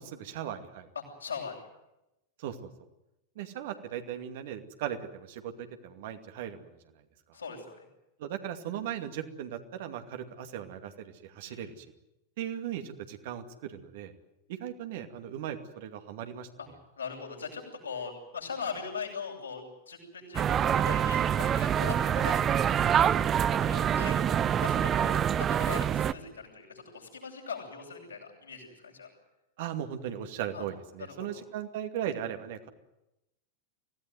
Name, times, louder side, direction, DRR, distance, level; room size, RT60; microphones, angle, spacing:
voice 1, 0.0-0.9 2.4-2.7 3.4-6.8 8.2-11.8 12.4-14.1 14.5-16.5 29.6-32.7, right 10 dB, 55° right, 6 dB, 2.4 m, -38 dB
voice 2, 0.9-1.7 7.3-7.9 11.4-11.7 16.6-16.7 17.0-22.7 23.5-24.2 24.6-29.1 30.5-30.6 31.0-31.4, left 5 dB, 75° left, -1 dB, 8.0 m, -40 dB
sound 1, 20.3-26.1, right 9 dB, 25° right, 0.8 m, -26 dB
25.0 x 17.5 x 9.6 m, 0.92 s
figure-of-eight pair, 90°, 0 cm